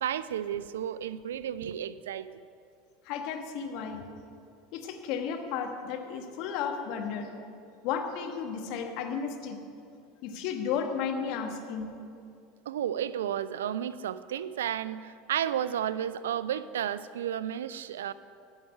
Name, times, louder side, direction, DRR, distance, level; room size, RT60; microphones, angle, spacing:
voice 1, 0.0-2.4 12.7-18.1, right 10 dB, 85° right, 15 dB, 0.4 m, -32 dB
voice 2, 3.1-4.0 4.7-7.3 7.8-9.6 10.2-11.9, left 7 dB, 60° left, 4 dB, 1.3 m, -33 dB
10.0 x 5.7 x 8.6 m, 2.4 s
hypercardioid pair, 90°, 0 cm